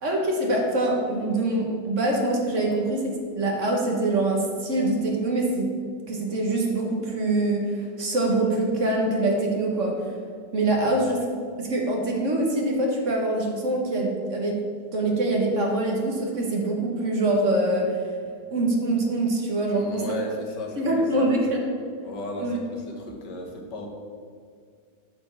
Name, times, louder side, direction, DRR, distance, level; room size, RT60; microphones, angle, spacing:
voice 1, 0.0-5.7 6.1-10.1 10.5-11.1 11.6-14.6 14.9-18.2 18.5-20.2 20.8-21.6 22.4-22.6, right 2 dB, 50° right, -1 dB, 1.5 m, -24 dB
voice 2, 10.7-11.1 19.7-21.4 22.0-23.9, left 1 dB, 85° left, 1 dB, 1.9 m, -35 dB
8.4 x 4.4 x 7.0 m, 2.2 s
omnidirectional pair, 1.8 m